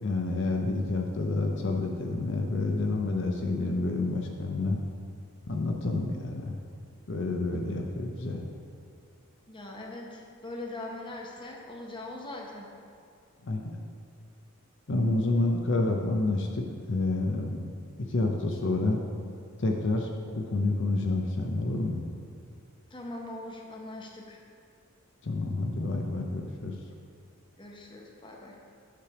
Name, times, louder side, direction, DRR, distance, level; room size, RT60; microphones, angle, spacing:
voice 1, 0.0-4.8 5.5-6.6 7.1-8.4 13.4-13.8 14.9-17.6 18.0-19.0 19.6-20.1 20.3-22.0 25.2-26.7, left 2 dB, 55° left, 2 dB, 0.6 m, -29 dB
voice 2, 9.5-12.7 22.9-24.4 27.6-28.6, left 2 dB, 20° left, -1 dB, 0.8 m, -41 dB
9.8 x 3.3 x 5.8 m, 2.3 s
head